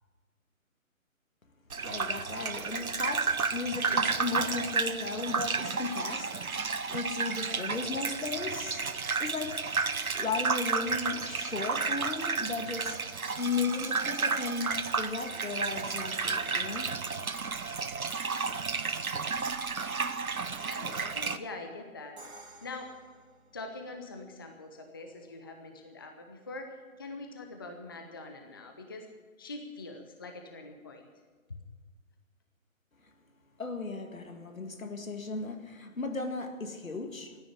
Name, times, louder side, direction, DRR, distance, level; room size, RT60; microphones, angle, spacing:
Gurgling / Bathtub (filling or washing), 1.7-21.4, right 4 dB, 85° right, 1.0 m, -32 dB
voice 1, 1.8-9.7 10.1-13.0 13.4-16.9 33.6-37.4, left 4 dB, 75° left, 2.1 m, -36 dB
voice 2, 20.5-22.2 22.6-22.9 23.5-26.7 27.0-29.1 29.4-31.1 31.5-31.6, left 2 dB, 15° left, 0.6 m, -43 dB
Crash cymbal, 22.2-24.1, right 2 dB, 50° right, 3.4 m, -52 dB
14.0 x 9.8 x 9.8 m
figure-of-eight pair, 145°, 41 cm